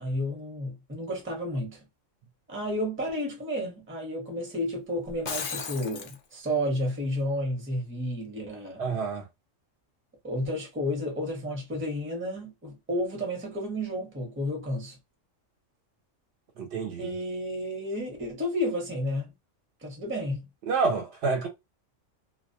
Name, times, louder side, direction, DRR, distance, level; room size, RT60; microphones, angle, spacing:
voice 1, 0.0-1.9 2.5-8.8 10.2-15.0 17.0-19.3 19.8-20.4, equal, 15° right, 0.6 m, -31 dB
Shatter, 5.1-6.2, left 6 dB, 75° left, 0.4 m, -35 dB
voice 2, 8.8-9.3 16.6-17.1 20.7-21.5, right 4 dB, 65° right, 0.8 m, -28 dB
2.3 x 2.1 x 2.6 m
omnidirectional pair, 1.3 m